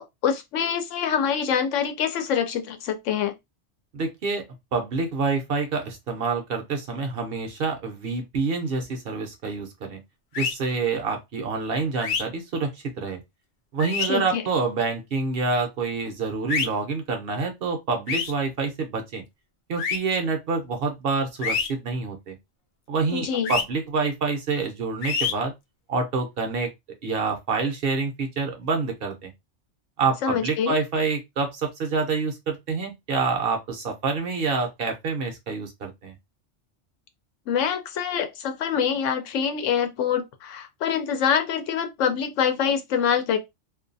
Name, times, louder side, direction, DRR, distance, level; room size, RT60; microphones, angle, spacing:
voice 1, 0.0-3.3 14.0-14.4 23.1-23.5 30.2-30.7 37.5-43.4, left 7 dB, 85° left, 0.9 m, -25 dB
voice 2, 3.9-4.4 4.7-10.0 10.4-13.2 13.7-19.2 19.7-22.4 22.9-25.5 25.9-26.7 27.0-29.3 30.0-36.1, right 4 dB, 60° right, 0.8 m, -27 dB
sound 1, 10.3-10.5 12.0-12.2 13.8-14.1 16.5-16.7 18.1-18.3 19.8-20.0 21.4-21.7 23.4-23.6 25.0-25.3, left 5 dB, 60° left, 0.5 m, -26 dB
2.5 x 2.3 x 2.5 m
omnidirectional pair, 1.2 m